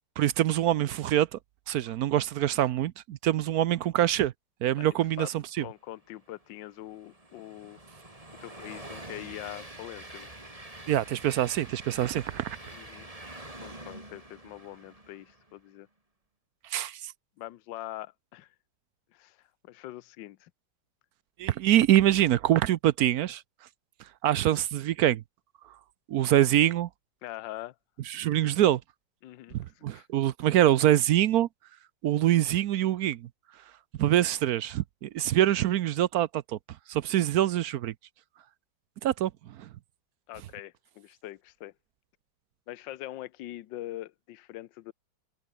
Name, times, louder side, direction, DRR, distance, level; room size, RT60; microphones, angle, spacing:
voice 1, 0.2-1.4 1.7-4.3 4.6-5.6 10.9-12.6 16.7-17.1 21.4-23.4 24.2-25.2 26.1-26.9 28.1-28.8 29.5-31.5 32.0-33.3 34.0-36.6 36.9-37.9 39.0-39.7, right 12 dB, 65° right, 1.0 m, -25 dB
voice 2, 4.8-5.3 5.6-7.8 8.4-10.3 12.7-13.1 13.6-15.9 17.4-18.5 19.1-19.4 19.6-20.5 27.2-27.7 29.2-30.1 34.2-34.3 40.3-41.7 42.7-44.9, left 15 dB, 75° left, 1.4 m, -43 dB
Train, 6.1-15.5, right 1 dB, 15° right, 3.9 m, -46 dB
omnidirectional pair, 2.0 m